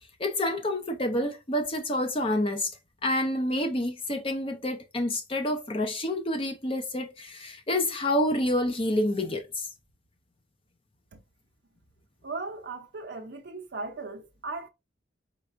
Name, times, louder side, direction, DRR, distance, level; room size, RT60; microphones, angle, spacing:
voice 1, 0.2-2.8 3.0-9.7, left 1 dB, 30° left, 0.6 m, -28 dB
voice 2, 12.2-14.7, right 3 dB, 60° right, 0.6 m, -37 dB
4.4 x 3.9 x 2.5 m
head